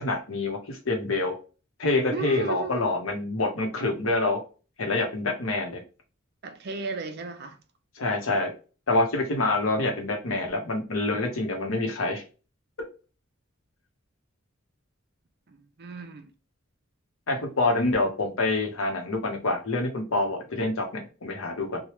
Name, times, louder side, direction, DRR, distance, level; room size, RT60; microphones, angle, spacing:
voice 1, 0.0-1.3 1.8-4.4 4.8-5.8 8.0-8.5 8.9-12.2 17.3-21.8, left 2 dB, 80° left, 0.9 m, -26 dB
voice 2, 2.1-2.8 6.4-7.6 15.5-16.3, right 4 dB, 50° right, 0.4 m, -35 dB
3.2 x 2.3 x 2.9 m
head